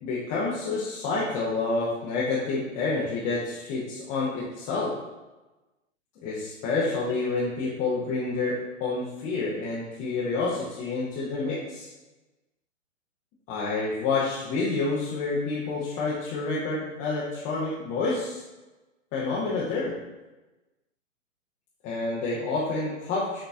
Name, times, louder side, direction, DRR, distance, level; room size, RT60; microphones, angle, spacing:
voice 1, 0.0-4.9 6.2-11.9 13.5-18.4 19.1-19.9 21.8-23.4, left 3 dB, 20° left, -6 dB, 0.6 m, -28 dB
6.7 x 3.0 x 2.3 m, 1.1 s
figure-of-eight pair, 120°, 40 cm